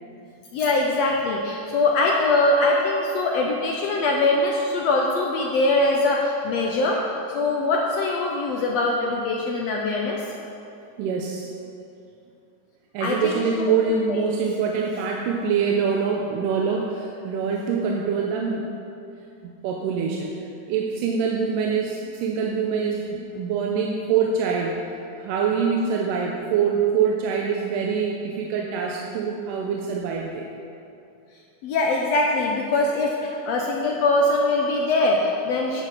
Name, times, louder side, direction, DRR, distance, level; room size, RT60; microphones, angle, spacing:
voice 1, 0.5-7.0 7.3-10.2 13.0-13.7 14.1-14.2 31.6-35.8, left 2 dB, 80° left, -1 dB, 1.4 m, -22 dB
voice 2, 11.0-11.5 12.9-18.7 19.6-20.3 20.7-24.8 25.2-30.5, right 6 dB, 85° right, 0 dB, 2.2 m, -24 dB
9.7 x 7.0 x 5.8 m, 2.7 s
omnidirectional pair, 3.8 m